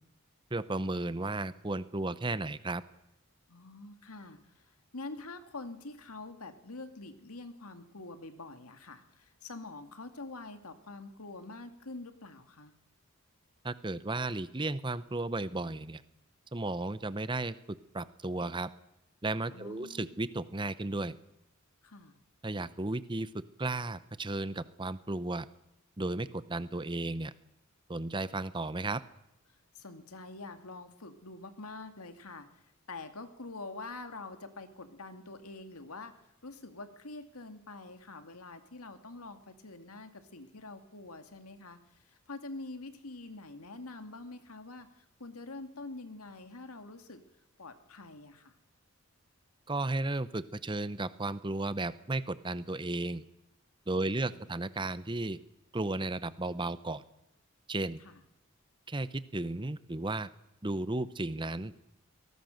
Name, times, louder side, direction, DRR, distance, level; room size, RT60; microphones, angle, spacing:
voice 1, 0.5-2.8 13.6-16.0 16.5-18.7 19.2-21.1 22.4-25.5 26.0-27.3 27.9-29.0 49.7-53.2 53.9-55.4 55.7-57.0 57.7-58.0 58.9-60.3 60.6-61.7, right 2 dB, 20° right, 15 dB, 0.7 m, -34 dB
voice 2, 3.5-12.7 19.5-20.1 21.8-22.2 29.5-36.1 36.4-47.2 47.6-48.5 53.9-54.7 58.0-58.2, left 3 dB, 90° left, 8 dB, 2.2 m, -46 dB
23.0 x 19.0 x 6.5 m, 0.86 s
head